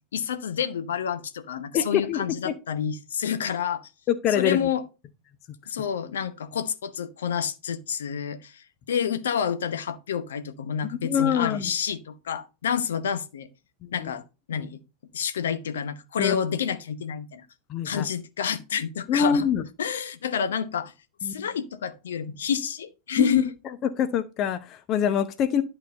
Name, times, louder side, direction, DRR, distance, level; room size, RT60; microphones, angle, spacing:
voice 1, 0.1-3.9 4.3-4.8 5.7-13.5 13.9-14.2 14.5-14.8 15.1-17.4 17.8-19.5 19.8-20.9 21.2-23.4, left 7 dB, 65° left, 0.9 m, -29 dB
voice 2, 1.7-2.5 4.1-4.6 10.9-11.7 13.8-14.1 14.5-14.7 16.2-16.4 17.7-18.1 19.1-19.6 21.2-21.5 23.2-23.3 24.0-25.6, left 8 dB, 35° left, 0.7 m, -25 dB
11.5 x 4.0 x 5.3 m
figure-of-eight pair, 90°, 0 cm